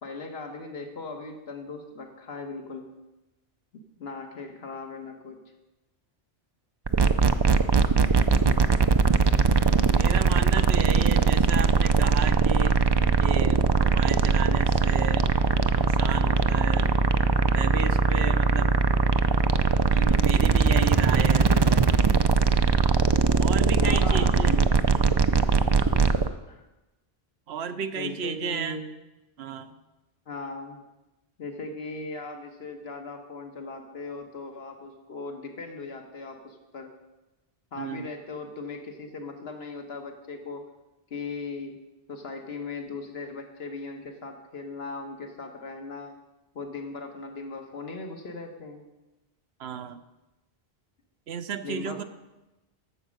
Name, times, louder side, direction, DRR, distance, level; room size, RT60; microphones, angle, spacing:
voice 1, 0.0-2.9 3.7-5.4 23.8-24.7 26.5-26.7 27.9-28.9 30.3-30.8 31.4-36.9 37.7-40.7 41.1-41.8 42.1-46.2 46.5-48.9 51.6-52.0, left 3 dB, 75° left, 4 dB, 1.6 m, -38 dB
sound 1, 6.9-26.3, right 4 dB, 40° right, 0.3 m, -21 dB
voice 2, 10.0-12.8 13.2-15.3 15.7-16.9 17.5-18.7 19.9-21.8 23.4-24.6 25.0-25.2 27.5-28.8 29.4-29.7 37.8-38.1 49.6-50.0 51.3-52.0, right 7 dB, 80° right, 10 dB, 1.0 m, -33 dB
12.0 x 7.3 x 6.5 m, 1.0 s
omnidirectional pair, 1.1 m